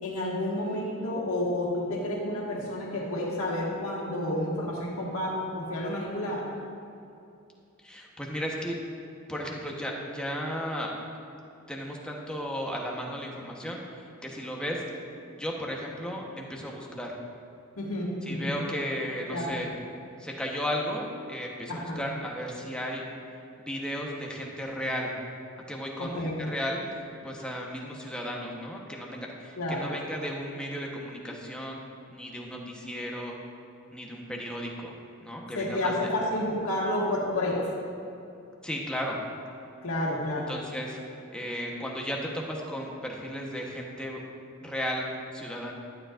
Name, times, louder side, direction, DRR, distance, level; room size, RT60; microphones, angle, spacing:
voice 1, 0.0-6.5 17.8-18.6 19.3-19.5 21.7-22.0 26.0-26.4 29.6-29.9 35.5-37.7 39.8-40.5, left 1 dB, 75° left, -3 dB, 1.9 m, -30 dB
voice 2, 7.8-8.7 9.3-10.9 11.7-14.8 15.3-17.2 18.3-19.7 20.2-23.0 23.6-25.1 25.7-26.8 27.2-31.8 32.1-33.4 33.9-34.9 35.2-36.1 38.6-39.2 40.5-41.0 41.3-44.2 44.6-45.1 45.3-45.7, equal, 5° left, -2 dB, 1.0 m, -34 dB
12.0 x 10.0 x 2.5 m, 2.6 s
head